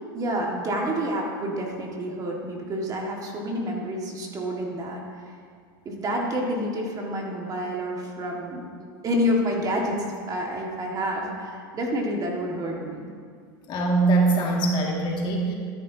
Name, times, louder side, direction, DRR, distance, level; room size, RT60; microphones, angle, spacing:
voice 1, 0.1-5.0 5.9-13.0, equal, 30° right, 0 dB, 1.7 m, -28 dB
voice 2, 13.7-15.5, right 3 dB, 40° left, -1 dB, 2.0 m, -22 dB
12.5 x 11.0 x 2.8 m, 2.2 s
hypercardioid pair, 110°, 12 cm